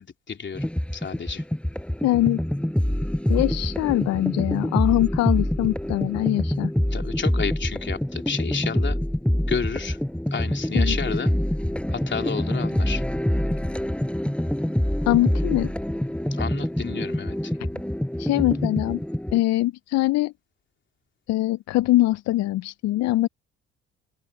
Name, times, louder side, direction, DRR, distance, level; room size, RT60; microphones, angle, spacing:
voice 1, 0.0-1.4 6.9-9.0 9.5-10.0 10.3-11.3 11.9-13.0 16.3-17.5, left 6 dB, 40° left, 3.6 m, -31 dB
sound 1, 0.5-19.4, equal, 5° left, 5.4 m, -26 dB
voice 2, 2.0-2.4 3.3-6.7 10.7-11.0 15.1-15.7 18.2-19.0 19.3-20.3 21.3-23.3, left 16 dB, 65° left, 0.7 m, -22 dB
open air
hypercardioid pair, 55°, 29 cm